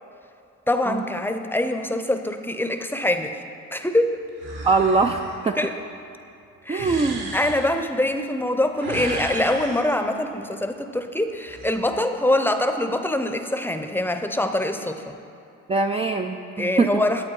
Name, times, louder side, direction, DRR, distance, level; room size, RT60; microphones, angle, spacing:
voice 1, 0.7-3.4 3.7-4.2 5.6-5.7 6.7-7.0 7.3-15.1 16.6-17.3, left 1 dB, 5° left, 7 dB, 0.7 m, -24 dB
sound 1, 4.4-5.4 6.8-7.7 8.7-9.9 11.3-11.7, right 2 dB, 75° right, 2.4 m, -34 dB
voice 2, 4.6-5.6 6.7-7.3 15.7-17.0, right 3 dB, 20° right, 4 dB, 0.4 m, -22 dB
11.5 x 8.2 x 4.8 m, 2.6 s
cardioid pair, 85°, 33 cm